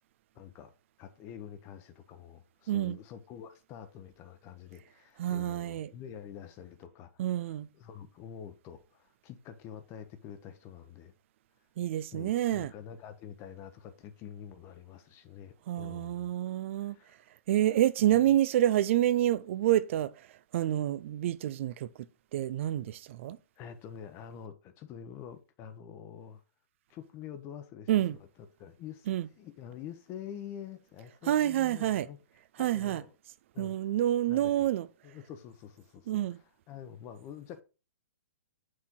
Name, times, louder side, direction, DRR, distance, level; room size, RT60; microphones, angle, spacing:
voice 1, 0.3-0.7 1.0-11.1 12.1-16.3 16.8-17.2 23.6-26.4 26.9-28.3 28.6-32.2 32.5-33.1 33.5-33.8 34.3-34.7 35.0-37.6, left 9 dB, 30° left, 0.9 m, -47 dB
voice 2, 5.2-5.9 7.2-7.7 11.8-12.7 15.7-17.0 17.5-20.1 20.5-21.9 22.3-23.4 27.9-28.2 29.1-29.3 31.3-32.1 32.6-33.0 33.6-34.9 36.1-36.4, right 12 dB, 55° right, 0.5 m, -28 dB
6.3 x 4.4 x 3.7 m
hypercardioid pair, 130°, 8 cm